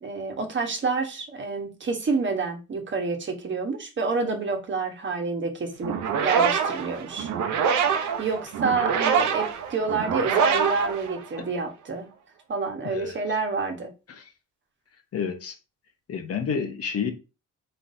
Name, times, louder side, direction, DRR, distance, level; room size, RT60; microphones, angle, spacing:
voice 1, 0.0-7.3 8.2-12.1 12.5-13.9, right 4 dB, 40° right, 1.2 m, -28 dB
sound 1, 5.8-11.7, right 7 dB, 75° right, 0.8 m, -25 dB
voice 2, 12.8-13.2 14.1-14.3 15.1-15.5 16.1-17.1, left 6 dB, 50° left, 1.0 m, -29 dB
4.5 x 3.9 x 2.7 m
cardioid pair, 90°, 30 cm